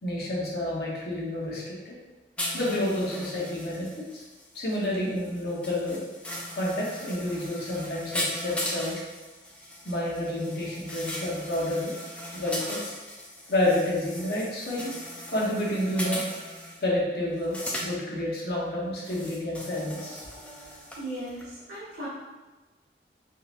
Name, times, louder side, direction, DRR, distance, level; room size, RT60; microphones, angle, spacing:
voice 1, 0.0-1.9 2.5-3.9 4.1-4.2 4.5-6.0 6.6-9.0 9.8-11.9 12.3-12.9 13.5-14.9 15.3-16.2 16.8-20.2, left 1 dB, 55° left, -5 dB, 0.9 m, -29 dB
sound 1, 2.4-16.8 17.4-17.9 19.0-21.0 21.4-21.5, left 1 dB, 5° left, 0.3 m, -38 dB
voice 2, 21.0-22.1, right 1 dB, 85° right, -12 dB, 1.2 m, -37 dB
3.8 x 2.7 x 2.5 m, 1.2 s
head